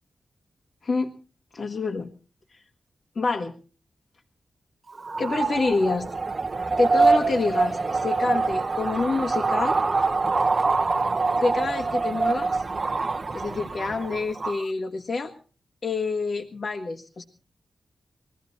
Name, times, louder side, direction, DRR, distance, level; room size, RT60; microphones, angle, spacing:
voice 1, 1.5-2.1 2.5-2.6 3.1-3.5 5.2-6.1 6.8-9.8 11.3-12.6 13.3-15.3 15.8-17.2, left 3 dB, 60° left, 1 dB, 1.5 m, -27 dB
sound 1, 4.9-14.6, right 3 dB, 40° right, 0.8 m, -25 dB
21.5 x 14.0 x 4.1 m, 0.39 s
wide cardioid pair, 90°, 0 cm